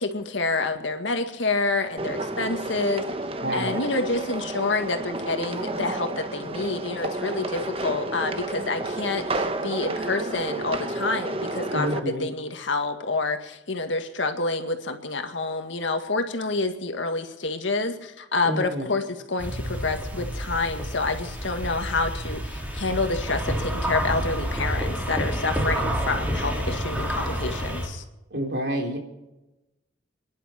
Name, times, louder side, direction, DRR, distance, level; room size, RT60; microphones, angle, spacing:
voice 1, 0.0-3.1 3.5-28.0, left 3 dB, 80° left, 6 dB, 1.9 m, -28 dB
sound 1, 2.0-12.0, right 2 dB, 30° right, 1.0 m, -31 dB
voice 2, 3.4-3.8 11.7-12.3 18.4-18.9 28.3-29.0, equal, 60° right, 1 dB, 3.6 m, -28 dB
sound 2, 19.4-27.9, equal, 10° right, 2.9 m, -29 dB
27.5 x 11.0 x 4.5 m, 0.99 s
head